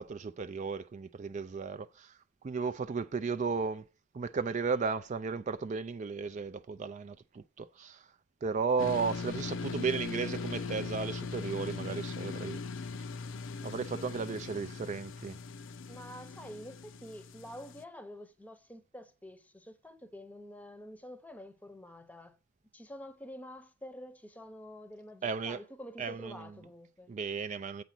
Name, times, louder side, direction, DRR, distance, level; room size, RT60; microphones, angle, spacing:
voice 1, 0.0-2.2 2.4-3.8 4.1-8.1 8.4-12.6 13.6-15.4 25.2-25.6 26.0-26.5 27.1-27.8, right 5 dB, 35° right, 0.4 m, -34 dB
sound 1, 8.8-17.8, left 4 dB, 65° left, 0.6 m, -40 dB
voice 2, 15.9-22.4 22.7-27.1, equal, 10° left, 0.8 m, -48 dB
8.1 x 5.0 x 5.9 m
head